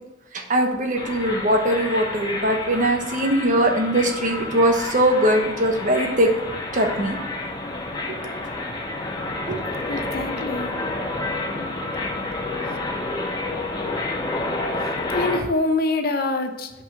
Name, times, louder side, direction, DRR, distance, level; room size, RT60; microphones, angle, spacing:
voice 1, 0.3-6.3 6.7-7.2 9.5-9.6, right 1 dB, 45° right, 4 dB, 1.1 m, -21 dB
sound 1, 1.0-15.4, left 2 dB, 25° left, 1.0 m, -29 dB
voice 2, 9.9-10.7 15.1-16.7, left 2 dB, 55° left, 7 dB, 0.8 m, -24 dB
5.5 x 5.5 x 5.6 m, 1.0 s
head